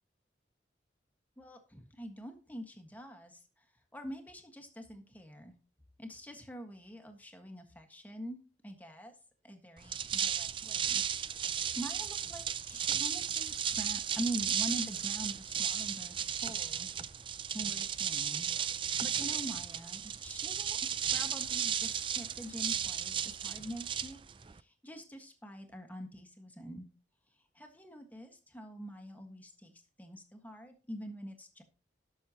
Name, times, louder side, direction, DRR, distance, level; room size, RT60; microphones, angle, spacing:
voice 1, 1.4-3.7 3.9-5.5 6.0-9.1 9.4-17.2 17.5-18.5 18.8-24.2 24.5-26.9 27.5-29.7 30.0-31.6, right 1 dB, 10° left, 4 dB, 1.5 m, -45 dB
sound 1, 9.8-24.6, right 8 dB, 30° right, 0.4 m, -34 dB
18.0 x 6.4 x 2.9 m, 0.33 s
head